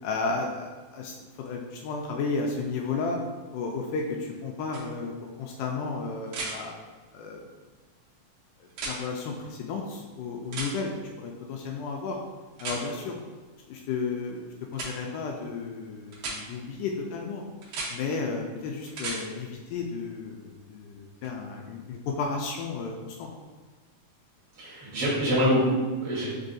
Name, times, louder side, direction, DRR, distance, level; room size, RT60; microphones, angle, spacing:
voice 1, 0.0-3.2 3.5-6.8 7.1-7.4 8.6-10.9 11.2-12.2 12.6-13.2 13.7-17.4 17.9-23.3, left 4 dB, 80° left, 1 dB, 1.9 m, -33 dB
sound 1, 4.7-4.8 6.3-6.5 8.7-9.0 10.5-10.7 12.6-12.8 14.7-14.9 16.1-16.4 17.6-17.9 18.9-19.2 21.2-21.3, right 3 dB, 90° right, 1.3 m, -34 dB
voice 2, 24.5-26.2, equal, 70° right, -7 dB, 1.4 m, -25 dB
5.4 x 3.4 x 2.6 m, 1.3 s
omnidirectional pair, 4.0 m